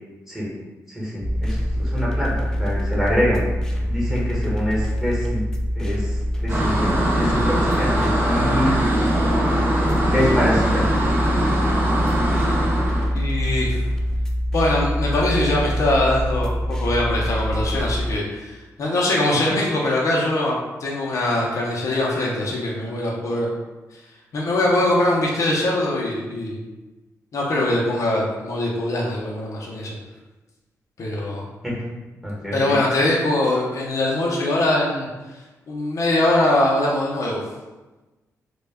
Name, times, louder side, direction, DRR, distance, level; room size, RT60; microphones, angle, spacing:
voice 1, 0.9-3.4 3.9-5.4 5.7-8.8 10.1-10.9 19.3-19.4 31.6-31.7 32.2-32.8, equal, 5° right, -7 dB, 1.0 m, -25 dB
sound 1, 1.2-18.2, equal, 10° left, 0.3 m, -24 dB
sound 2, 6.5-13.1, right 1 dB, 35° right, 0.6 m, -22 dB
voice 2, 13.1-13.8 14.5-23.5 24.3-26.6 27.3-30.0 31.0-31.4 32.5-35.1 35.7-37.4, left 1 dB, 60° left, -3 dB, 0.5 m, -22 dB
2.2 x 2.1 x 3.3 m, 1.1 s
cardioid pair, 100°, 6 cm